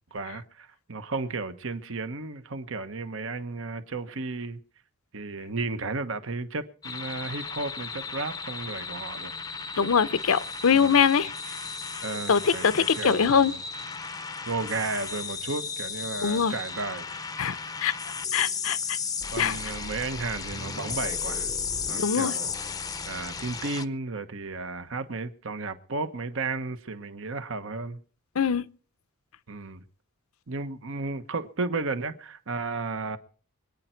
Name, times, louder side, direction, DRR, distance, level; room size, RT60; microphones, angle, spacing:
voice 1, 0.1-4.6 5.1-9.3 10.8-11.0 12.0-13.6 14.4-17.0 19.3-21.5 21.9-22.5 23.1-28.0 29.5-29.8 30.5-33.2, right 3 dB, 65° right, 1.1 m, -33 dB
sound 1, 6.8-23.8, left 5 dB, 20° left, 0.6 m, -35 dB
voice 2, 9.8-11.3 12.3-13.5 16.2-16.5 17.4-17.9 18.3-19.0 19.4-19.6 22.0-22.3 28.4-28.7, left 6 dB, 75° left, 0.7 m, -23 dB
25.0 x 9.3 x 4.5 m
head